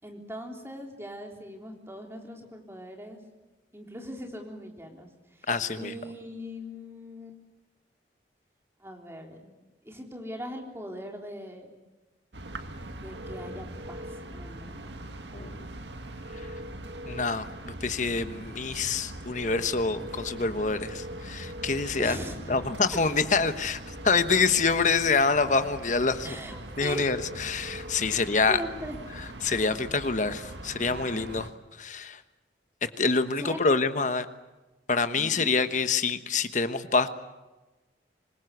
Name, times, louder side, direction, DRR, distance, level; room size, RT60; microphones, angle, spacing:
voice 1, 0.0-3.2 3.7-5.5 5.8-7.4 8.8-9.6 9.8-11.8 12.9-14.9 21.9-22.6 22.9-23.0 26.2-27.1 28.1-29.0 33.4-33.7 35.2-35.5, equal, 15° right, 2 dB, 3.6 m, -40 dB
voice 2, 5.5-5.9 15.3-15.6 17.1-22.2 22.5-26.4 26.8-27.2 27.4-28.6 29.4-31.5 31.8-32.2 33.0-34.3 34.9-37.1, left 4 dB, 45° left, 10 dB, 1.2 m, -26 dB
sound 1, 12.3-31.5, right 1 dB, 80° right, 1.9 m, -41 dB
26.0 x 21.0 x 8.2 m, 1.1 s
head